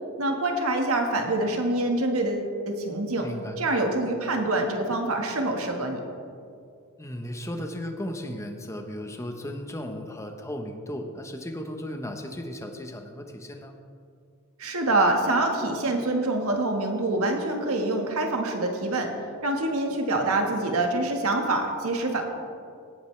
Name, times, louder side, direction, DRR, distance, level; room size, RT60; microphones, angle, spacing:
voice 1, 0.2-3.3 3.6-6.0 14.6-19.1 19.4-22.2, right 2 dB, 75° right, 3 dB, 1.5 m, -25 dB
voice 2, 3.2-3.6 7.0-13.7, left 1 dB, 15° left, 4 dB, 0.9 m, -35 dB
17.5 x 8.9 x 3.2 m, 2.4 s
head